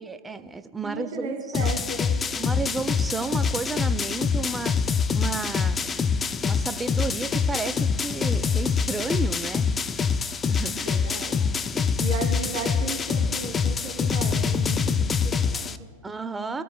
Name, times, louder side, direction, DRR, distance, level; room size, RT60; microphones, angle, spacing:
voice 1, 0.0-1.7 2.4-4.7 5.1-6.1 6.4-9.7 10.5-11.0 11.7-12.1 16.0-16.6, right 3 dB, 10° right, 11 dB, 0.7 m, -32 dB
voice 2, 0.8-2.2 10.8-11.5 12.0-15.9, right 3 dB, 55° right, 2 dB, 2.2 m, -35 dB
sound 1, 1.5-15.8, left 5 dB, 20° left, 0.5 m, -25 dB
25.0 x 13.0 x 2.3 m, 1.5 s
figure-of-eight pair, 90°, 0 cm